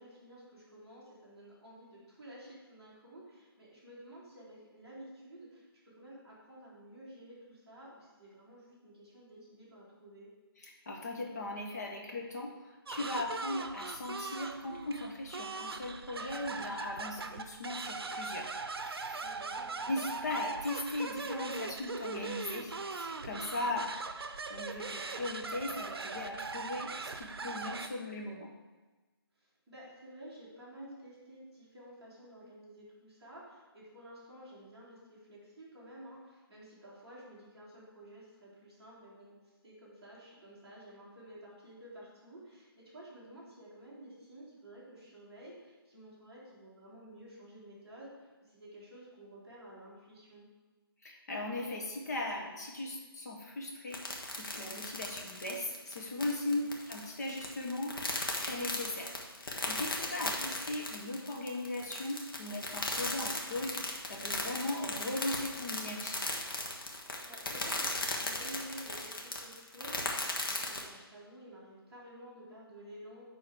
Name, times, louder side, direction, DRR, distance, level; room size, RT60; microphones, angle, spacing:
voice 1, 0.0-5.6 5.9-10.3 16.5-17.0 19.2-19.7 29.4-39.4 39.6-50.5 56.4-56.7 60.1-60.3 64.8-65.0 67.3-73.2, right 1 dB, 5° right, -14 dB, 2.5 m, -52 dB
voice 2, 10.6-19.3 19.9-23.9 24.5-28.5 51.0-66.2, left 2 dB, 40° left, 0 dB, 1.3 m, -38 dB
sound 1, 12.9-27.9, right 4 dB, 70° right, 0.6 m, -40 dB
sound 2, 53.9-70.8, left 2 dB, 60° left, 1.4 m, -37 dB
9.5 x 3.9 x 4.9 m, 1.2 s
hypercardioid pair, 170°, 13 cm